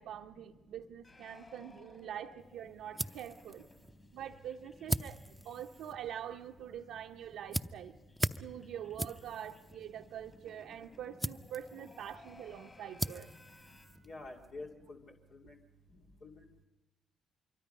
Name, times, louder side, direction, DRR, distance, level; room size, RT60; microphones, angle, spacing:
voice 1, 0.0-3.7 4.1-8.0 8.4-13.3, right 9 dB, 80° right, -1 dB, 0.8 m, -45 dB
sound 1, 1.0-6.1 6.4-6.5 6.8-6.9 7.2-13.9, left 2 dB, 30° left, 7.1 m, -61 dB
sound 2, 2.4-14.5, right 1 dB, 10° right, 0.7 m, -42 dB
voice 2, 14.1-15.1 15.4-15.5 16.2-16.6, left 2 dB, 65° left, -1 dB, 2.5 m, -48 dB
25.5 x 23.0 x 5.4 m, 1.2 s
hypercardioid pair, 50°, 0 cm